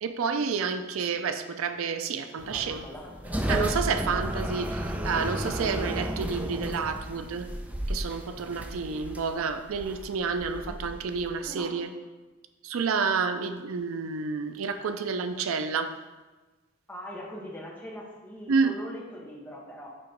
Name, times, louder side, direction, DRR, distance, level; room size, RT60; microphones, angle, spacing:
voice 1, 0.0-2.8 3.5-7.5 7.9-11.9 12.6-16.0 18.5-18.8, right 5 dB, 85° right, 9 dB, 0.5 m, -29 dB
sound 1, 2.4-11.5, equal, 5° right, 0.4 m, -33 dB
voice 2, 2.5-3.7 10.7-10.8 11.4-11.7 16.9-19.9, equal, 10° left, -2 dB, 1.1 m, -41 dB
8.6 x 3.0 x 5.0 m, 1.2 s
head